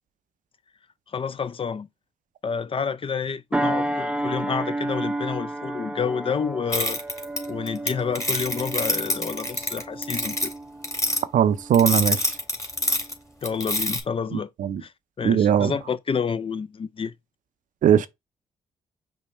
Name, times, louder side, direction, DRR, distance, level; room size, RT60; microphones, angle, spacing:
voice 1, 1.1-1.9 2.4-7.0 7.5-10.5 13.4-14.5 14.8-14.9 15.2-17.1, left 6 dB, 40° left, 0.5 m, -29 dB
sound 1, 3.5-12.4 12.8-13.1, right 1 dB, 10° right, 0.6 m, -31 dB
sound 2, 6.7-7.9 8.1-10.5 10.8-11.2 11.7-13.1 13.4-14.0, left 1 dB, 20° left, 1.9 m, -25 dB
voice 2, 11.3-12.4 14.3-14.8 15.2-15.7 17.8-18.1, right 9 dB, 65° right, 0.5 m, -20 dB
5.5 x 2.1 x 4.2 m
hypercardioid pair, 45°, 15 cm